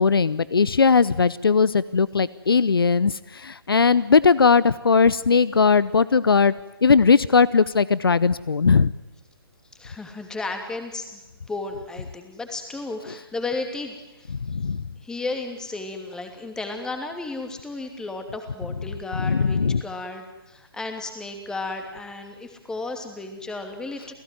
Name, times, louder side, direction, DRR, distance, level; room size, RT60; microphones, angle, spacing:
voice 1, 0.0-6.5 6.8-8.9 14.4-14.8 19.1-19.8, left 5 dB, 70° left, 19 dB, 0.8 m, -19 dB
voice 2, 9.7-11.2 11.5-14.3 15.0-24.1, left 3 dB, 5° left, 5 dB, 2.7 m, -33 dB
29.5 x 17.5 x 9.4 m, 1.0 s
figure-of-eight pair, 135°, 13 cm